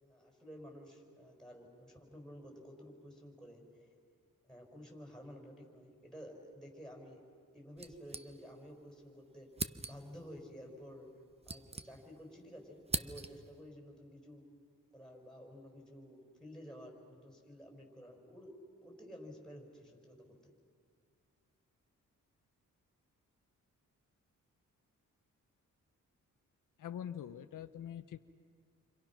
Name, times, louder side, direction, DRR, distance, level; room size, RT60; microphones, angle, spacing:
voice 1, 0.0-3.9 4.5-7.2 7.5-9.5 9.8-11.1 11.5-14.5 14.9-18.5 18.8-20.5, equal, ahead, 0 dB, 5.3 m, -52 dB
sound 1, 7.8-8.8 9.0-9.1 9.5-10.2 11.0-12.3 12.6-13.6, right 3 dB, 20° right, 0.7 m, -42 dB
voice 2, 26.8-28.2, left 9 dB, 75° left, 9 dB, 0.8 m, -44 dB
29.0 x 25.5 x 6.0 m, 2.1 s
wide cardioid pair, 115°, 32 cm